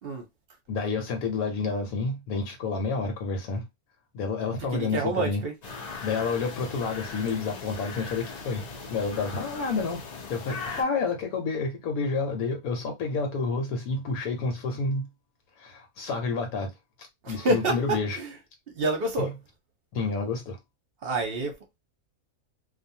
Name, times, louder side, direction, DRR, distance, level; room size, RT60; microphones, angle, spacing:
voice 1, 0.7-3.6 4.1-5.4 6.0-8.6 8.9-10.0 10.3-15.1 15.6-16.7 17.3-18.2 19.2-19.3 19.9-20.6, left 4 dB, 80° left, 1.2 m, -29 dB
voice 2, 4.6-5.5 17.2-18.4 18.7-19.3 21.0-21.5, right 2 dB, 50° right, 0.8 m, -28 dB
sound 1, 5.6-10.8, left 4 dB, 50° left, 0.5 m, -39 dB
2.5 x 2.3 x 2.7 m
omnidirectional pair, 1.5 m